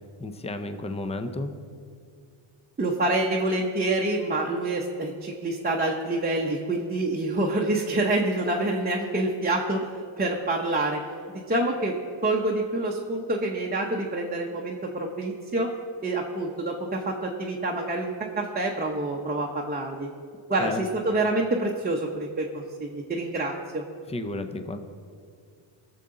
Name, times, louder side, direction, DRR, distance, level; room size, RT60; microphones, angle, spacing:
voice 1, 0.2-1.5 20.6-20.8 24.1-24.8, left 2 dB, 15° left, 8 dB, 0.5 m, -32 dB
voice 2, 2.8-9.9 10.2-11.0 11.5-15.7 16.0-20.1 20.5-23.8, right 2 dB, 20° right, -1 dB, 0.8 m, -27 dB
19.0 x 6.9 x 3.8 m, 2.3 s
cardioid pair, 130°, 50 cm